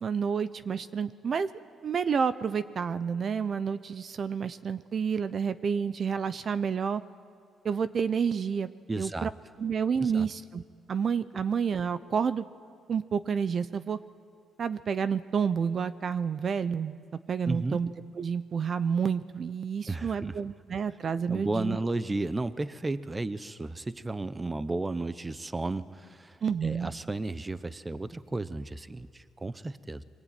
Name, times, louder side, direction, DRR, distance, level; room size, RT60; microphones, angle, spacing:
voice 1, 0.0-1.5 1.8-7.0 7.6-8.7 9.0-9.3 9.6-10.6 10.9-12.4 12.9-14.0 14.6-17.0 17.3-21.8 26.4-26.9, right 6 dB, 50° right, 13 dB, 0.8 m, -29 dB
voice 2, 8.9-9.3 10.0-10.3 17.5-17.8 19.9-20.3 21.3-30.0, right 2 dB, 20° right, 14 dB, 1.0 m, -33 dB
23.5 x 20.5 x 9.3 m, 2.3 s
cardioid pair, 90°, 0 cm